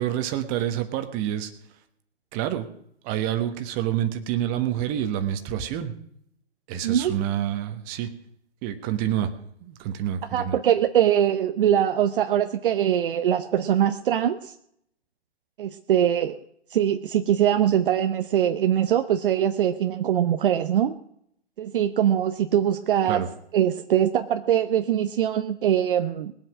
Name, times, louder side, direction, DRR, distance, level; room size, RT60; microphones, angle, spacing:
voice 1, 0.0-1.5 2.3-2.7 3.0-5.9 6.7-8.1 8.6-9.3 9.6-10.6 23.0-23.3, right 11 dB, 25° right, 8 dB, 1.3 m, -27 dB
voice 2, 10.3-14.5 15.6-16.4 16.7-21.0 21.6-23.2 23.5-26.3, right 10 dB, 50° right, 8 dB, 0.8 m, -22 dB
20.0 x 8.0 x 6.1 m, 0.70 s
hypercardioid pair, 135°, 35 cm